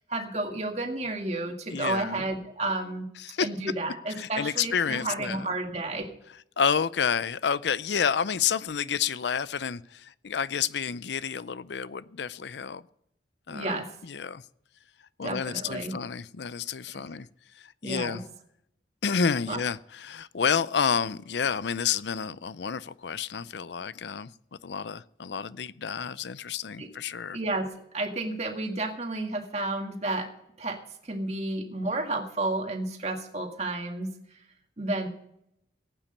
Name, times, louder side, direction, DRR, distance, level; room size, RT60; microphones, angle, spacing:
voice 1, 0.1-3.1 3.4-6.1 13.5-13.9 15.2-16.0 16.9-17.0 17.8-18.2 19.5-19.6 26.8-26.9 27.3-27.7 27.9-30.3 30.6-34.1 34.8-35.1, right 2 dB, 40° right, 1.9 m, -31 dB
voice 2, 1.7-2.2 3.2-3.5 4.2-5.5 6.6-12.8 13.5-14.4 15.2-17.3 17.6-18.2 19.0-24.3 24.6-27.4, left 6 dB, 80° left, 0.5 m, -29 dB
16.5 x 9.0 x 5.4 m
head